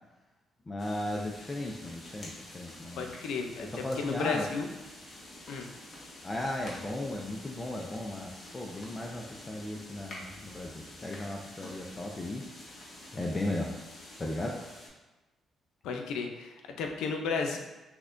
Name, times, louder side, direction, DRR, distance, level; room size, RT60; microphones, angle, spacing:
voice 1, 0.7-3.1 3.7-4.4 6.2-12.4 13.1-13.7 14.2-14.6, left 1 dB, 25° left, 0 dB, 0.4 m, -36 dB
sound 1, 0.8-14.9, left 1 dB, 45° left, 1.1 m, -48 dB
voice 2, 3.0-4.7 5.5-5.7 15.8-17.6, left 5 dB, 85° left, 3 dB, 0.4 m, -33 dB
5.7 x 2.2 x 2.5 m, 1.1 s
cardioid pair, 90°, 0 cm